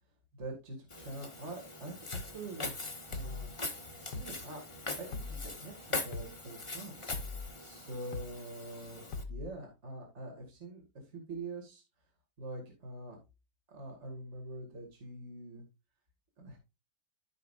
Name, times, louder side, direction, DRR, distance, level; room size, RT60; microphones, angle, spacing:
voice 1, 0.3-3.5 4.0-4.6 4.9-5.1 5.4-11.8 12.4-13.2 13.7-15.7 16.4-16.6, right 2 dB, 40° right, 1 dB, 2.4 m, -45 dB
Walk footsteps, 0.9-9.2, left 3 dB, 20° left, 1.1 m, -42 dB
sound 1, 2.1-2.4 3.1-3.5 4.1-4.4 5.1-5.5 6.1-6.4 7.1-7.5 8.1-8.4 9.1-9.5, left 4 dB, 70° left, 1.5 m, -40 dB
14.0 x 5.3 x 2.4 m, 0.26 s
omnidirectional pair, 1.9 m